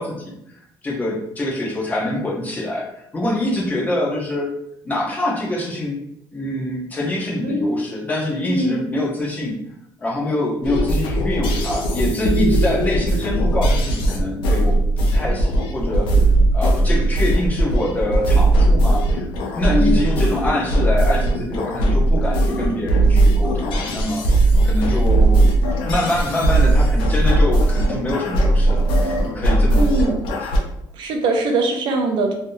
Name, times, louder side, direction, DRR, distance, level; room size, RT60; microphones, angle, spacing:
voice 1, 0.0-4.5 4.8-6.0 6.3-9.6 10.0-16.1 16.5-19.3 19.5-30.1 30.4-30.5, left 1 dB, 20° left, -3 dB, 0.7 m, -25 dB
voice 2, 7.4-7.8 8.5-8.8 19.7-20.0 29.8-30.2 30.9-32.3, right 2 dB, 65° right, 2 dB, 0.5 m, -21 dB
sound 1, 10.6-30.6, right 1 dB, 85° left, 0.6 m, -18 dB
3.4 x 2.7 x 2.2 m, 0.78 s
cardioid pair, 150°, 8 cm